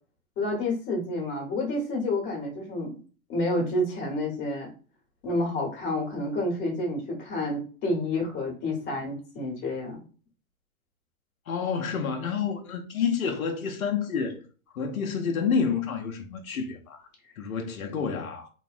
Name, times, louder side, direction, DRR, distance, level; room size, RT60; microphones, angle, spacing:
voice 1, 0.4-3.0 3.3-4.7 5.2-10.0, left 1 dB, 25° left, 1.1 m, -29 dB
voice 2, 11.5-14.4 14.7-17.1 17.4-18.5, left 6 dB, 85° left, 0.6 m, -29 dB
3.0 x 2.1 x 2.5 m
hypercardioid pair, 120°, 41 cm